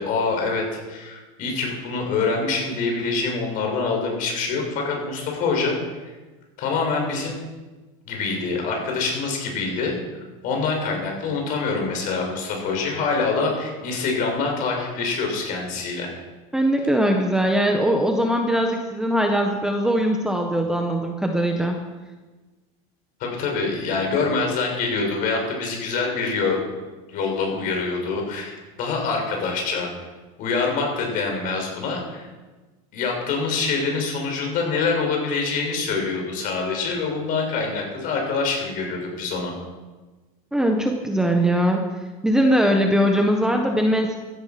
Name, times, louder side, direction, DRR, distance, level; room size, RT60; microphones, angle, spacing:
voice 1, 0.0-5.8 6.6-7.4 8.1-10.0 10.4-16.1 23.2-26.6 27.1-29.9 30.4-32.3 32.9-39.5, left 4 dB, 45° left, 1 dB, 6.4 m, -25 dB
voice 2, 16.5-21.8 40.5-42.0 42.2-44.2, equal, 5° right, 2 dB, 1.3 m, -21 dB
16.5 x 13.5 x 6.0 m, 1.2 s
supercardioid pair, 145°, 19 cm